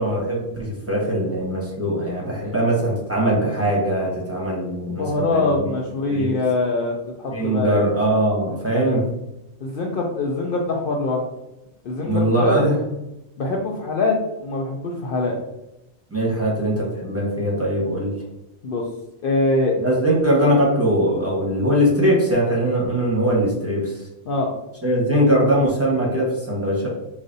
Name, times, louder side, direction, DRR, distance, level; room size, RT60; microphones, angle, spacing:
voice 1, 0.0-5.7 6.1-6.3 7.3-9.0 12.0-12.8 16.1-18.1 19.8-24.0 24.8-26.9, right 1 dB, 15° right, -4 dB, 0.9 m, -21 dB
voice 2, 5.0-7.8 8.7-9.0 9.6-11.3 11.8-12.6 13.4-14.2 14.4-15.4 18.6-18.8 19.2-19.8 24.3-24.5, left 2 dB, 60° left, 0 dB, 0.6 m, -23 dB
4.9 x 2.5 x 2.6 m, 0.91 s
omnidirectional pair, 1.2 m